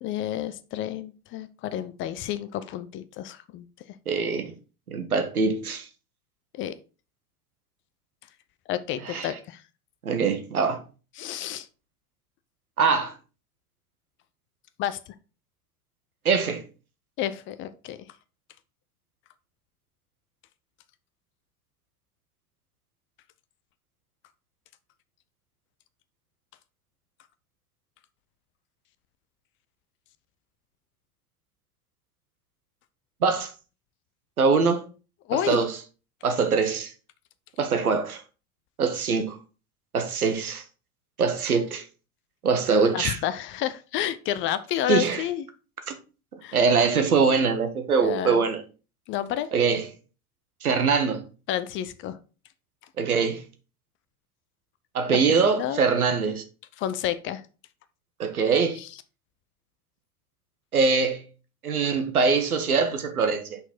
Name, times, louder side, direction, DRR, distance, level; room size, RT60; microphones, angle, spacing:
voice 1, 0.0-3.7 6.5-6.8 8.7-9.6 11.2-11.7 14.8-15.0 17.2-18.0 35.3-35.6 42.9-45.4 46.4-46.6 48.0-48.4 49.1-49.5 51.5-52.2 55.1-55.8 56.8-57.4 58.8-58.9, left 11 dB, 30° left, 0.4 m, -30 dB
voice 2, 4.1-4.5 4.9-5.9 9.0-9.3 10.0-10.8 12.8-13.1 16.2-16.6 33.2-33.5 34.4-34.9 35.3-35.8 36.2-36.9 37.6-38.2 38.8-39.4 39.9-40.6 41.2-41.8 42.4-43.2 44.9-45.2 45.9-46.0 46.5-48.6 49.5-49.9 50.6-51.2 53.0-53.4 54.9-56.4 58.2-58.8 60.7-61.2 61.6-63.6, right 5 dB, 85° right, 1.1 m, -23 dB
5.9 x 4.2 x 4.3 m
figure-of-eight pair, 80°, 43 cm